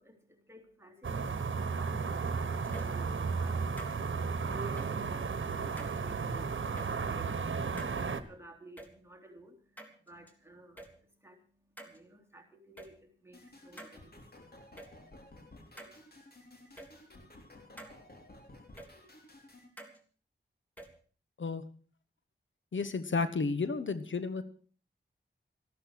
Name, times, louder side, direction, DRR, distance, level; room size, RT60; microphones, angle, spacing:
voice 1, 0.0-15.8, right 1 dB, 10° right, 2 dB, 3.5 m, -55 dB
sound 1, 1.0-8.2, right 5 dB, 75° right, 1.2 m, -34 dB
sound 2, 2.6-3.0 3.8-3.9 4.8-4.9 5.8-6.0 6.8-6.9 7.8-7.9 8.8-8.9 9.8-10.3 10.8-10.9 11.8-12.0 12.8-12.9 13.8-13.9 14.8-14.9 15.8-16.0 16.8-16.9 17.8-17.9 18.8-18.9 19.8-20.0 20.8-20.9, right 1 dB, 10° left, 3.3 m, -47 dB
sound 3, 13.3-19.7, left 1 dB, 50° left, 3.4 m, -55 dB
voice 2, 22.7-24.4, left 4 dB, 70° left, 12 dB, 1.2 m, -32 dB
13.5 x 12.5 x 6.4 m, 0.43 s
cardioid pair, 55°, 20 cm